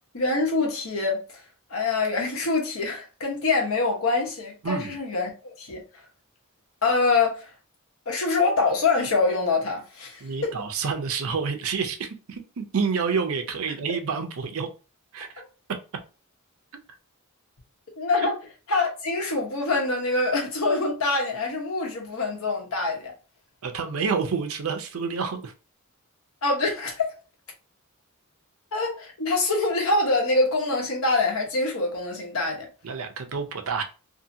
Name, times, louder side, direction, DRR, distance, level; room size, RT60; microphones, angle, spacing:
voice 1, 0.1-1.2 1.7-5.8 6.8-7.5 8.1-10.5 15.4-15.5 18.0-18.4 18.7-23.1 26.4-27.1 28.7-32.7, left 3 dB, 70° left, 1.0 m, -25 dB
voice 2, 4.6-5.0 10.2-14.7 15.1-15.3 23.6-25.5 32.8-33.8, right 5 dB, 70° right, 0.5 m, -28 dB
2.7 x 2.6 x 2.7 m
head